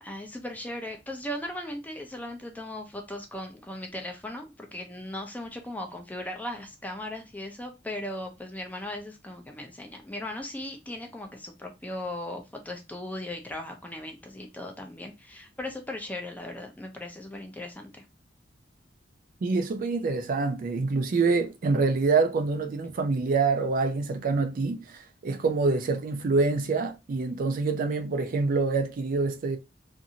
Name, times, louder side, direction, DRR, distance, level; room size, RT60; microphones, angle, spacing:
voice 1, 0.0-18.0, left 1 dB, 10° left, 0.5 m, -38 dB
voice 2, 19.4-29.6, right 4 dB, 45° right, 0.4 m, -26 dB
2.6 x 2.5 x 2.7 m
head